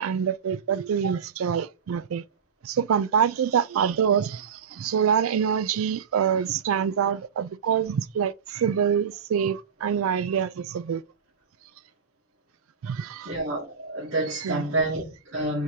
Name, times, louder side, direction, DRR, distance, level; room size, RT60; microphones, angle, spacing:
voice 1, 0.0-2.2 2.6-11.0 12.8-13.3 14.4-14.7, right 7 dB, 80° right, 0.3 m, -25 dB
voice 2, 13.2-15.6, right 2 dB, 60° right, 1.5 m, -28 dB
3.7 x 2.8 x 4.6 m
head